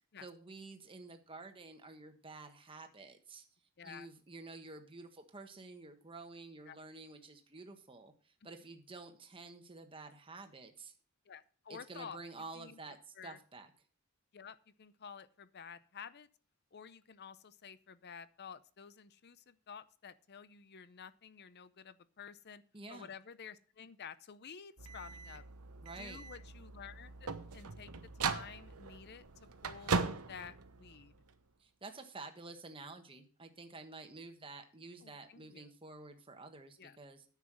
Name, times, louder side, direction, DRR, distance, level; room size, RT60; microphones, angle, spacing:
voice 1, 0.2-3.4 3.8-10.9 11.7-13.7 22.7-23.1 25.8-26.2 31.6-37.2, right 3 dB, 25° right, 5 dB, 1.3 m, -50 dB
voice 2, 3.8-4.1 6.7-6.8 11.3-12.2 12.5-12.8 13.2-13.4 14.3-16.3 16.7-22.6 22.9-25.4 26.0-30.0 30.3-31.1 35.0-35.7 36.8-37.0, left 7 dB, 50° left, 15 dB, 0.6 m, -51 dB
sound 1, 24.8-31.3, right 4 dB, 85° right, 1.0 m, -39 dB
9.9 x 7.3 x 6.2 m, 0.42 s
head